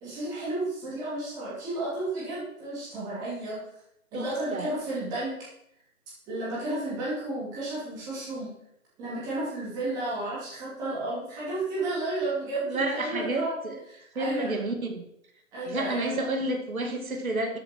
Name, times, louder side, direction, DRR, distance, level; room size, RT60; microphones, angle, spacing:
voice 1, 0.0-3.6 4.1-5.3 6.3-8.5 9.0-13.6 13.9-14.5 15.5-16.2, right 2 dB, 10° right, -8 dB, 2.8 m, -32 dB
voice 2, 4.1-4.7 12.6-13.8 14.2-15.0 15.7-17.6, right 2 dB, 75° right, 4 dB, 2.1 m, -30 dB
12.5 x 7.6 x 4.5 m, 0.77 s
hypercardioid pair, 170°, 42 cm